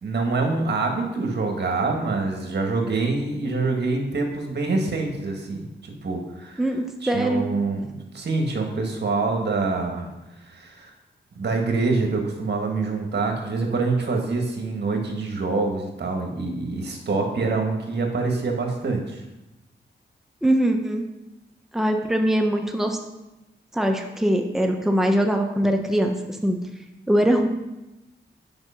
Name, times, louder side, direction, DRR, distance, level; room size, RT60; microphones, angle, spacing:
voice 1, 0.0-6.6 7.0-10.1 10.4-10.9 11.3-19.2, right 3 dB, 60° right, 2 dB, 1.8 m, -25 dB
voice 2, 6.6-7.5 20.4-21.0 21.7-23.0 23.7-26.6 27.1-27.5, right 1 dB, ahead, 3 dB, 1.0 m, -22 dB
7.9 x 5.1 x 5.8 m, 0.99 s
cardioid pair, 60°, 19 cm